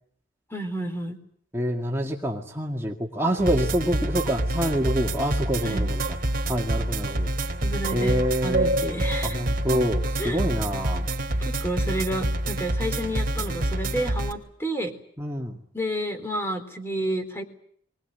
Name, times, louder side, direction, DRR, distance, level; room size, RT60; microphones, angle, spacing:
voice 1, 0.5-1.2 5.6-5.9 7.6-8.2 8.4-9.4 10.2-10.4 11.4-14.9 15.7-17.4, right 1 dB, 15° left, 6 dB, 3.9 m, -30 dB
voice 2, 1.5-6.0 6.5-7.3 7.9-8.7 9.2-11.1 15.2-15.6, equal, 15° right, 0 dB, 2.1 m, -26 dB
sound 1, 3.4-14.3, right 1 dB, 50° right, 3.3 m, -27 dB
24.0 x 19.5 x 9.3 m, 0.63 s
head